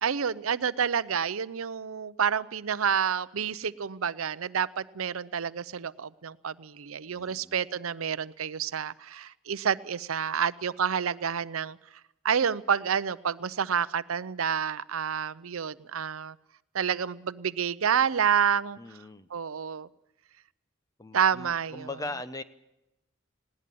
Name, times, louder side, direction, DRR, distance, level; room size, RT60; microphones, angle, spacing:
voice 1, 0.0-11.8 12.2-16.3 16.7-18.8 19.3-19.9 21.1-21.9, right 7 dB, 90° right, 16 dB, 0.6 m, -29 dB
voice 2, 7.1-7.6 18.8-19.3 21.0-22.4, left 2 dB, 15° left, 11 dB, 0.8 m, -40 dB
20.0 x 17.5 x 8.5 m, 0.93 s
head